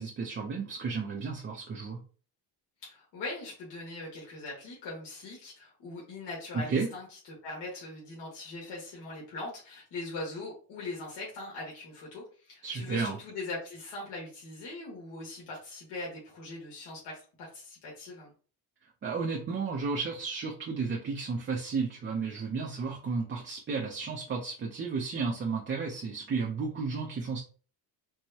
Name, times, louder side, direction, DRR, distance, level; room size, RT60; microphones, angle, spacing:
voice 1, 0.0-2.0 6.7-6.9 12.6-13.2 19.0-27.4, right 4 dB, 30° right, -1 dB, 0.5 m, -33 dB
voice 2, 2.8-18.3, left 2 dB, 80° left, -4 dB, 1.6 m, -41 dB
4.6 x 2.2 x 2.8 m, 0.38 s
cardioid pair, 155°, 41 cm